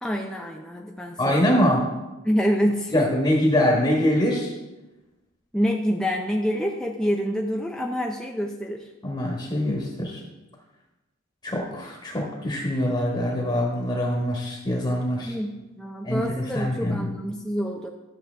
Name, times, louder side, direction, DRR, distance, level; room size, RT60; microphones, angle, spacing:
voice 1, 0.0-1.7 2.2-3.1 5.5-8.9 15.2-17.9, equal, 5° left, 0 dB, 0.5 m, -27 dB
voice 2, 1.2-1.8 2.9-4.5 9.0-10.2 11.4-15.3 16.0-17.1, left 1 dB, 20° left, -2 dB, 1.4 m, -24 dB
12.5 x 7.2 x 3.4 m, 1.1 s
head